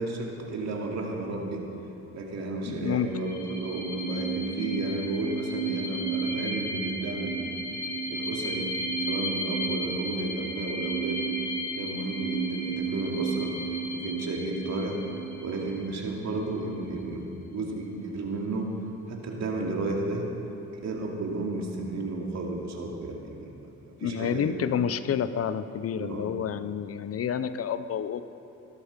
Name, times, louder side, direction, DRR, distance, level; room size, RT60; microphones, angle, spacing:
voice 1, 0.0-1.7 2.1-7.6 8.1-8.7 9.1-11.3 11.7-13.6 13.9-15.1 15.4-18.7 19.1-20.3 20.8-23.7 24.0-24.7 26.0-26.3, right 2 dB, 60° right, 0 dB, 2.6 m, -32 dB
voice 2, 2.7-3.1 24.0-28.2, left 8 dB, 50° left, 13 dB, 0.6 m, -29 dB
sound 1, 3.0-16.4, right 3 dB, 70° left, 4.3 m, -33 dB
17.0 x 13.0 x 5.2 m, 2.9 s
cardioid pair, 90°, 30 cm